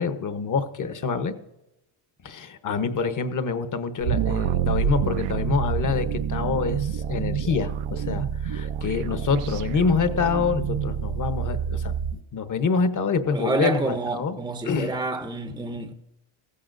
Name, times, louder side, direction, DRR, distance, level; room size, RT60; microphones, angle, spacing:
voice 1, 0.0-1.3 2.2-11.9 12.3-14.4 14.6-14.9, left 5 dB, 40° left, 1.0 m, -26 dB
sound 1, 4.0-12.2, right 8 dB, 80° right, 0.8 m, -27 dB
voice 2, 13.3-15.9, right 3 dB, 10° right, 0.7 m, -28 dB
15.5 x 15.5 x 2.6 m
cardioid pair, 135°, 50 cm